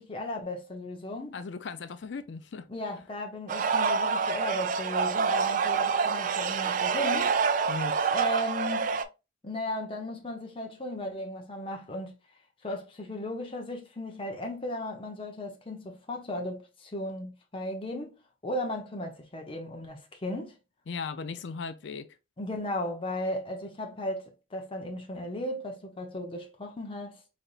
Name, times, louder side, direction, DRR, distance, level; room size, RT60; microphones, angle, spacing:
voice 1, 0.0-1.4 2.7-7.3 8.1-9.0 9.4-12.1 12.6-18.2 18.4-20.5 22.4-27.2, left 1 dB, 30° left, 0.7 m, -36 dB
voice 2, 1.3-2.7 7.7-8.0 20.9-22.1, left 4 dB, 75° left, 0.4 m, -37 dB
sound 1, 3.5-9.0, right 5 dB, 45° right, 0.4 m, -27 dB
3.9 x 3.4 x 2.4 m
head